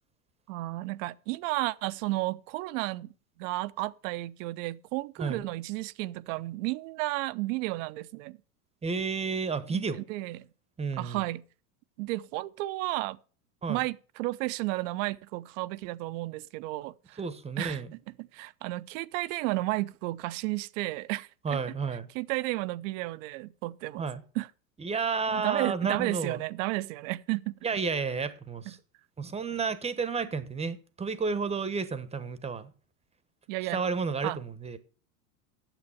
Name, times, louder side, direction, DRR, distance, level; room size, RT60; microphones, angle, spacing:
voice 1, 0.5-3.1 3.4-8.4 9.7-10.5 11.0-11.4 12.0-13.2 13.7-17.2 17.6-17.8 18.3-21.3 22.1-24.1 24.4-24.5 25.3-27.5 33.5-33.8 34.2-34.4, right 19 dB, 55° right, 0.7 m, -32 dB
voice 2, 8.8-10.0 10.8-11.2 13.6-13.8 17.2-17.9 21.4-22.1 24.0-24.2 24.8-26.4 27.6-28.8 29.2-32.7 33.7-34.8, right 5 dB, 15° right, 1.0 m, -31 dB
9.0 x 7.4 x 7.0 m
hypercardioid pair, 110°, 45 cm